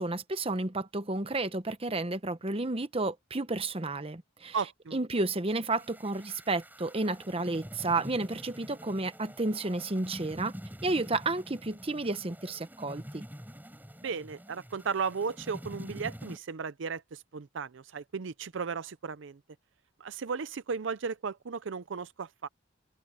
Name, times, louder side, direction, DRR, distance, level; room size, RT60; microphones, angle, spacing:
voice 1, 0.0-4.6 4.9-10.5 10.8-13.2, right 2 dB, 30° right, 1.0 m, -31 dB
voice 2, 4.5-5.0 14.0-19.4 20.0-22.5, right 5 dB, 65° right, 0.5 m, -35 dB
sound 1, 5.7-16.4, equal, 10° right, 4.4 m, -46 dB
head